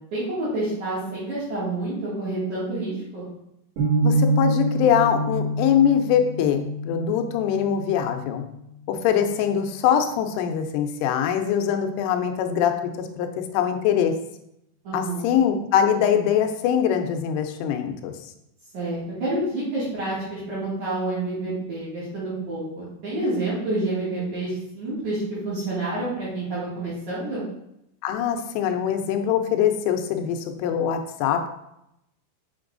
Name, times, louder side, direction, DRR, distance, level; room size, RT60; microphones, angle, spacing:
voice 1, 0.1-3.2 14.8-15.3 18.7-27.4, right 2 dB, 50° right, -9 dB, 2.7 m, -28 dB
sound 1, 3.8-9.8, right 1 dB, 65° right, 4.3 m, -27 dB
voice 2, 4.0-8.4 8.9-14.2 14.9-18.1 28.0-31.5, left 8 dB, 85° left, 6 dB, 3.2 m, -23 dB
7.6 x 6.0 x 2.5 m, 0.81 s
omnidirectional pair, 5.6 m